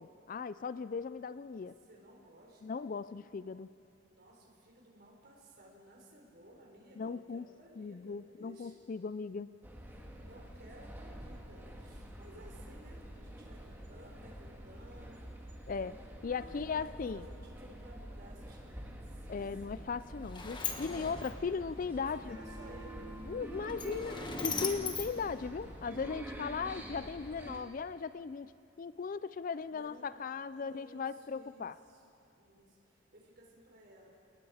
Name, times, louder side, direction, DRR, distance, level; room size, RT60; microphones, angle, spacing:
voice 1, 0.0-1.8 2.6-3.7 7.0-7.5 7.8-9.5 15.7-16.0 16.2-17.3 19.3-22.4 23.3-28.5 28.8-31.8, left 5 dB, 40° left, 15 dB, 0.4 m, -38 dB
voice 2, 1.6-2.8 4.0-8.8 10.2-15.3 16.3-19.4 22.0-23.0 29.7-30.1 30.5-32.0 32.4-34.2, right 1 dB, 50° right, 0 dB, 4.1 m, -57 dB
sound 1, 9.6-27.6, right 1 dB, 10° right, 2.0 m, -47 dB
Sliding door, 19.7-26.1, left 5 dB, 25° left, 1.3 m, -42 dB
28.5 x 19.5 x 4.9 m, 2.7 s
head